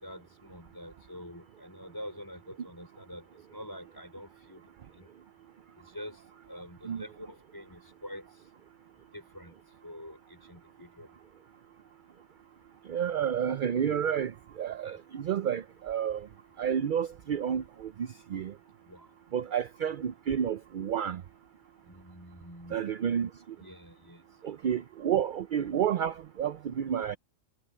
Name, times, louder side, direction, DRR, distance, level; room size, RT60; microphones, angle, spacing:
voice 1, 0.0-4.6 4.9-5.1 5.8-8.3 9.1-9.5 9.8-11.1 15.0-15.1 18.9-19.1 21.9-22.8 23.6-24.2, equal, 15° left, 4.8 m, -46 dB
voice 2, 12.9-16.3 16.6-18.5 19.3-21.2 22.7-23.3 24.4-27.2, right 8 dB, 60° right, 0.5 m, -30 dB
omnidirectional pair, 1.4 m